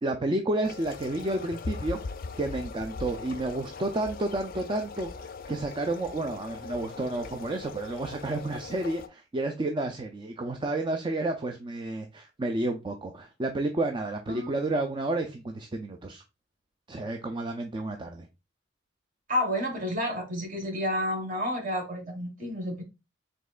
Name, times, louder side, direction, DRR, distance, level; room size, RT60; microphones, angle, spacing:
voice 1, 0.0-2.0 2.4-16.2 16.9-18.3, right 2 dB, 25° right, 0.4 m, -31 dB
sound 1, 0.6-9.1, left 4 dB, 50° left, 0.4 m, -40 dB
voice 2, 19.3-22.8, equal, 45° right, 1.5 m, -30 dB
5.2 x 3.6 x 2.4 m
head